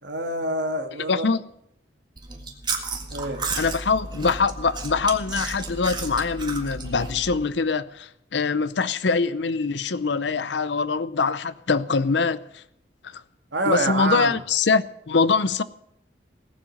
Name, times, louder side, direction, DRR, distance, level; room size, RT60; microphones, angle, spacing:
voice 1, 0.0-1.3 3.1-3.4 13.5-14.4, right 2 dB, 80° right, 1.7 m, -26 dB
voice 2, 1.1-1.4 3.6-12.6 13.1-13.2 13.7-15.6, left 4 dB, 75° left, 0.7 m, -23 dB
Chewing mastication, 2.2-7.5, right 3 dB, 25° right, 1.8 m, -33 dB
18.5 x 7.5 x 9.3 m
head